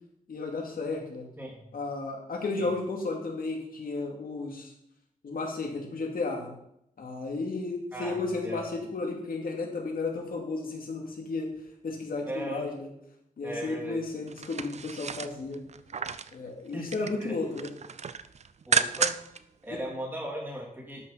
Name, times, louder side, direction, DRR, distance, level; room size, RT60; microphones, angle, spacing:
voice 1, 0.3-1.2 1.7-4.7 5.2-6.5 7.0-11.5 11.8-12.9 13.4-15.6 16.3-17.7 19.7-19.8, left 3 dB, 85° left, 1 dB, 2.5 m, -33 dB
voice 2, 12.3-12.7 13.4-14.0 16.7-17.4 18.7-19.1 19.6-21.0, right 1 dB, 15° right, -3 dB, 3.3 m, -37 dB
sound 1, 14.3-16.4 16.7-17.2 17.6-19.4 19.8-19.9, right 6 dB, 50° right, 0.5 m, -31 dB
12.5 x 6.1 x 5.7 m, 0.76 s
wide cardioid pair, 145°, 14 cm